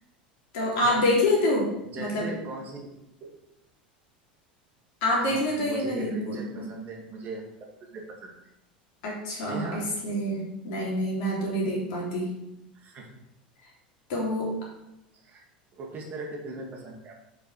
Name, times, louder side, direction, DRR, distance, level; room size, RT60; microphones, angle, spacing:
voice 1, 0.5-1.7 2.0-2.3 5.0-6.7 9.0-12.3 14.1-14.5, left 1 dB, 55° left, -3 dB, 2.9 m, -26 dB
voice 2, 1.9-2.9 3.2-3.4 5.2-7.4 7.9-8.3 9.5-9.9 12.7-13.1 15.1-15.4 15.7-17.2, right 3 dB, 35° right, 0 dB, 1.8 m, -39 dB
7.2 x 5.3 x 4.7 m, 0.88 s
figure-of-eight pair, 80°, 5 cm